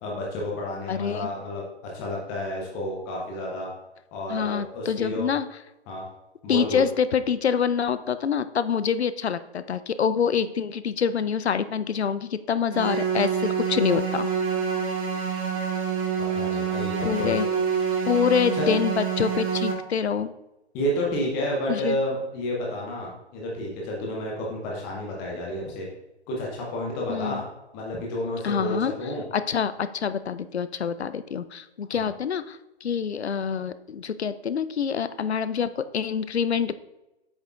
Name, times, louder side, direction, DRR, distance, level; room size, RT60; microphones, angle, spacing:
voice 1, 0.0-3.7 4.1-5.3 5.9-6.0 6.4-6.8 16.2-17.4 18.5-18.8 20.7-25.9 26.3-27.4 27.7-29.2 31.9-32.1, left 1 dB, 10° left, -2 dB, 0.5 m, -30 dB
voice 2, 0.9-1.3 4.3-5.5 6.5-14.3 17.0-17.5 18.1-20.3 21.7-22.0 27.1-27.4 28.4-28.9 29.3-36.7, left 7 dB, 70° left, 13 dB, 0.6 m, -26 dB
sound 1, 12.7-19.7, right 7 dB, 30° right, 1.2 m, -27 dB
8.1 x 6.5 x 2.4 m, 0.98 s
figure-of-eight pair, 130°, 34 cm